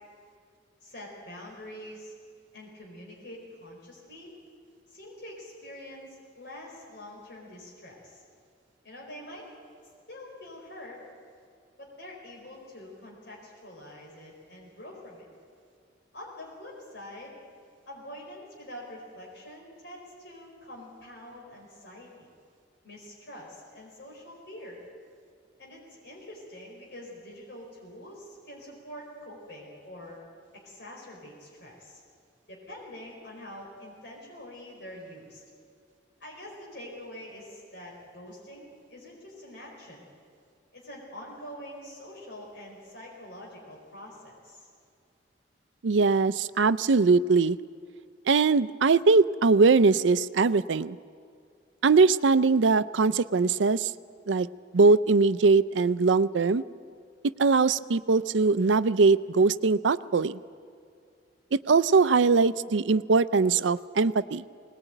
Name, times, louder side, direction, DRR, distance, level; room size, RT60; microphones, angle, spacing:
voice 1, 0.8-2.1 2.5-4.4 4.9-8.2 8.8-9.5 10.1-11.0 11.8-15.3 16.1-17.3 17.9-22.3 22.8-24.8 25.6-30.2 30.5-32.0 32.5-35.4 36.2-40.1 40.7-44.7, left 1 dB, 65° left, -2 dB, 4.7 m, -45 dB
voice 2, 45.8-47.6 48.3-51.0 51.8-53.9 54.3-54.5 54.7-56.6 57.4-60.4 61.5-64.4, right 4 dB, 85° right, 16 dB, 0.5 m, -21 dB
21.5 x 19.5 x 9.1 m, 2.3 s
head